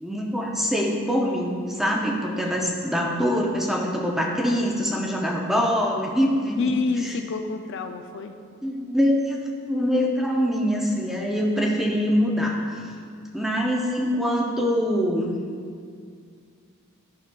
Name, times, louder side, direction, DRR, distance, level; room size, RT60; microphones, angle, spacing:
voice 1, 0.0-6.7 7.0-7.1 8.6-12.6 13.3-15.4, equal, ahead, -1 dB, 0.5 m, -24 dB
voice 2, 6.6-8.3, left 4 dB, 50° left, 7 dB, 0.4 m, -27 dB
10.5 x 5.8 x 2.3 m, 2.2 s
head